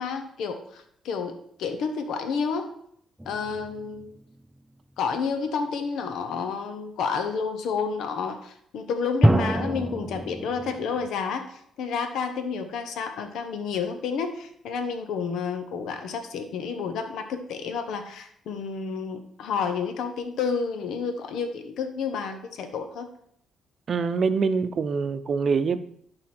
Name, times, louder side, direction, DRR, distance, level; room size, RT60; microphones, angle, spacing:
voice 1, 0.0-2.7 3.3-4.2 5.0-23.1 24.1-24.2, left 5 dB, 80° left, 7 dB, 0.9 m, -30 dB
sound 1, 3.2-4.5 9.2-11.1, right 1 dB, 10° right, 0.4 m, -26 dB
voice 2, 23.9-25.8, right 5 dB, 50° right, 11 dB, 0.6 m, -24 dB
11.5 x 4.9 x 4.4 m, 0.67 s
cardioid pair, 90°, 0 cm